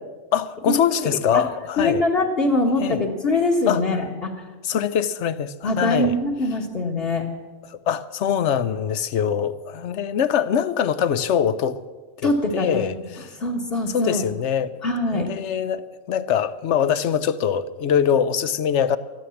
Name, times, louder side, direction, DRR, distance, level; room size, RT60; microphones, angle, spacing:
voice 1, 0.3-2.0 2.8-3.0 3.7-3.8 4.6-6.1 7.7-11.8 12.2-13.3 13.9-14.7 15.1-19.0, left 8 dB, 70° left, 1.0 m, -23 dB
voice 2, 1.0-1.4 1.8-4.4 5.6-7.2 12.2-12.8 13.4-14.2 14.8-15.3, left 2 dB, 50° left, 1.8 m, -23 dB
14.0 x 12.0 x 7.1 m
omnidirectional pair, 1.3 m